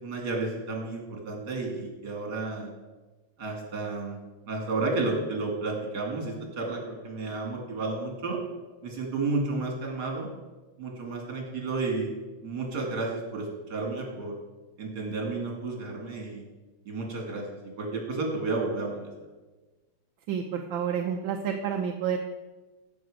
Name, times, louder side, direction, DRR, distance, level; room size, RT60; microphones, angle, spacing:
voice 1, 0.0-2.7 3.4-8.4 8.8-10.3 10.8-12.1 12.4-14.3 14.8-16.4 16.8-17.4 17.8-19.1, right 3 dB, 55° right, 0 dB, 3.2 m, -32 dB
voice 2, 20.3-22.2, right 8 dB, 75° right, 3 dB, 1.5 m, -29 dB
15.5 x 6.9 x 5.0 m, 1.2 s
omnidirectional pair, 2.2 m